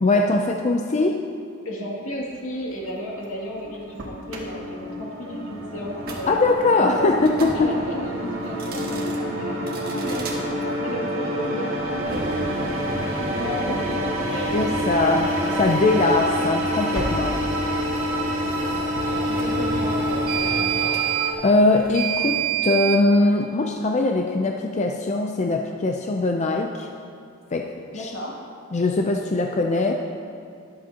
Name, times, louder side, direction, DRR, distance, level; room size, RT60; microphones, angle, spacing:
voice 1, 0.0-1.3 6.3-7.7 14.5-17.4 21.4-26.9 27.5-28.1 28.7-29.9, left 2 dB, 35° left, 3 dB, 0.5 m, -21 dB
voice 2, 1.6-6.3 6.8-7.1 7.5-9.6 9.8-10.4 10.8-15.1 18.1-20.9 27.9-28.3, equal, 80° left, -3 dB, 2.3 m, -34 dB
Engine starting, 2.1-19.1, equal, 85° right, 1.9 m, -43 dB
sound 1, 3.0-21.3, right 1 dB, 70° right, 2.0 m, -29 dB
sound 2, 6.0-6.2 7.2-7.6 8.5-9.2 9.7-10.4 12.0-23.0, right 3 dB, 45° right, 1.6 m, -28 dB
22.0 x 7.7 x 2.9 m, 2.4 s
head